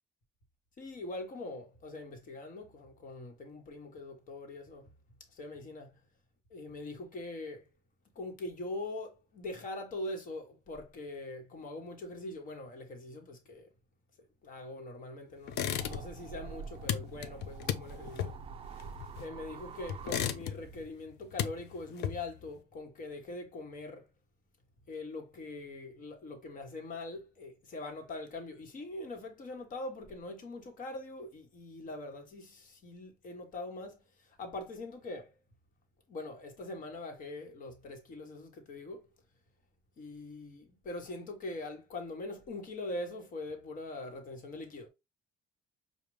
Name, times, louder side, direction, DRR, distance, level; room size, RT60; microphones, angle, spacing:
voice 1, 0.8-4.9 5.3-5.9 6.5-7.6 8.1-13.7 14.4-18.4 18.8-18.9 19.2-24.1 24.9-35.4 36.1-39.1 40.0-44.9, left 2 dB, 50° left, 1.3 m, -43 dB
sound 1, 15.5-16.3 16.5-19.5 19.9-20.8 21.1-22.5, left 10 dB, 80° left, 0.5 m, -35 dB
sound 2, 15.5-20.9, right 7 dB, 35° right, 0.3 m, -47 dB
5.0 x 2.3 x 3.1 m
cardioid pair, 110°, 17 cm